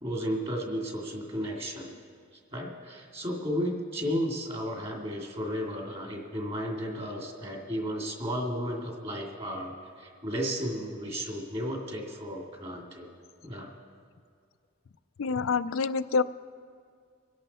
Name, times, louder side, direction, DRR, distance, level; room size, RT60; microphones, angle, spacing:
voice 1, 0.0-1.9 2.5-13.1 13.4-13.7, equal, 30° right, 0 dB, 2.5 m, -33 dB
voice 2, 15.2-16.2, left 5 dB, 70° left, 15 dB, 0.5 m, -26 dB
25.0 x 11.0 x 4.3 m, 2.1 s
head